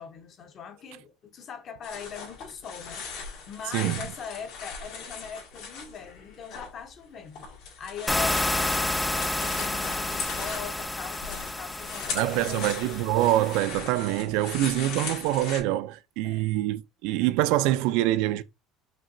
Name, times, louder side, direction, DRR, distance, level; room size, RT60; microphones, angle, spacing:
voice 1, 0.0-7.5 7.8-12.8 16.2-16.5, left 6 dB, 40° left, 0.8 m, -41 dB
sound 1, 1.8-6.7 7.0-15.6, left 5 dB, 75° left, 2.0 m, -39 dB
sound 2, 8.1-13.6, left 1 dB, 5° left, 0.3 m, -30 dB
voice 2, 12.1-18.4, right 15 dB, 75° right, 0.4 m, -25 dB
5.3 x 2.8 x 2.6 m
cardioid pair, 145°, 0 cm